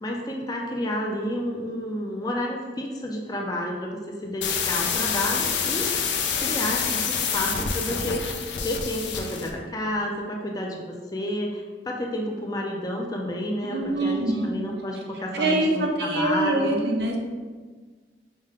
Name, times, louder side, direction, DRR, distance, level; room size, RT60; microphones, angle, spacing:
voice 1, 0.0-5.9 6.4-10.8 11.1-16.8, left 1 dB, 20° left, 0 dB, 0.4 m, -30 dB
sound 1, 4.4-9.5, left 6 dB, 80° left, 0.4 m, -27 dB
voice 2, 13.7-14.5 15.3-17.2, right 2 dB, 65° right, 1 dB, 0.6 m, -24 dB
5.1 x 2.1 x 3.6 m, 1.5 s
head